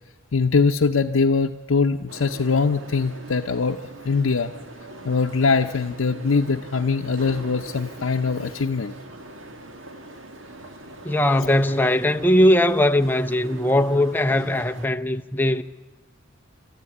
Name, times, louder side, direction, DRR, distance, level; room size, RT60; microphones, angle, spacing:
voice 1, 0.3-3.8 4.0-4.5 5.1-8.9 11.4-11.5, left 4 dB, 80° left, 0.7 m, -22 dB
sound 1, 2.1-14.9, right 1 dB, 70° right, 2.0 m, -41 dB
voice 2, 11.0-15.6, left 1 dB, 10° left, 0.7 m, -20 dB
25.0 x 13.0 x 9.8 m
head